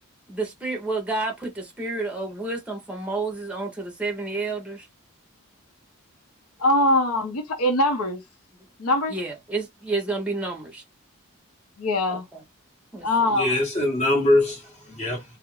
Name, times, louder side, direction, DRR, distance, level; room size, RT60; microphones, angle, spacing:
voice 1, 0.3-4.9 9.1-10.8 12.1-12.4 12.9-13.3, right 3 dB, 5° right, 0.7 m, -30 dB
voice 2, 6.6-8.2 8.8-9.2 11.8-12.2 13.0-13.5, left 1 dB, 75° left, 0.6 m, -22 dB
voice 3, 13.0-15.2, left 1 dB, 30° left, 1.0 m, -23 dB
2.4 x 2.0 x 3.0 m
head